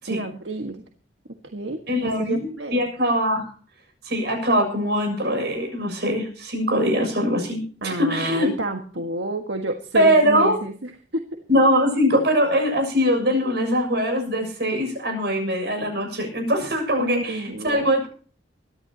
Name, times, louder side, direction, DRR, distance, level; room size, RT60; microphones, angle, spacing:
voice 1, 0.1-0.8 1.5-2.8 7.8-11.4 17.0-17.9, right 2 dB, 85° right, 5 dB, 1.7 m, -30 dB
voice 2, 1.9-3.4 4.0-8.5 9.9-10.6 11.5-18.1, equal, 65° right, 4 dB, 7.0 m, -22 dB
24.0 x 12.0 x 2.9 m, 0.42 s
head